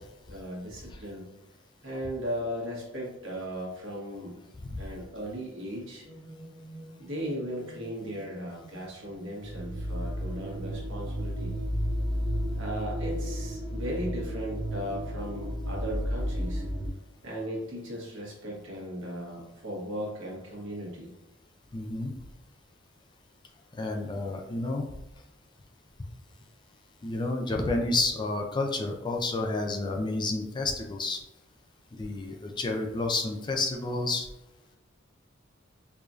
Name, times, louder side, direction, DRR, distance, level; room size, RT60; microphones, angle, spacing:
voice 1, 0.3-1.3 1.8-4.4 4.8-6.1 7.0-11.6 12.5-16.6 17.2-21.1, equal, 65° right, -3 dB, 1.3 m, -37 dB
sound 1, 6.0-8.9 9.1-16.9, equal, 5° right, 1.2 m, -33 dB
voice 2, 21.7-22.1 23.8-24.9 27.0-31.2 32.0-34.3, left 2 dB, 20° left, 2 dB, 0.4 m, -30 dB
4.8 x 2.6 x 2.4 m, 1.0 s
head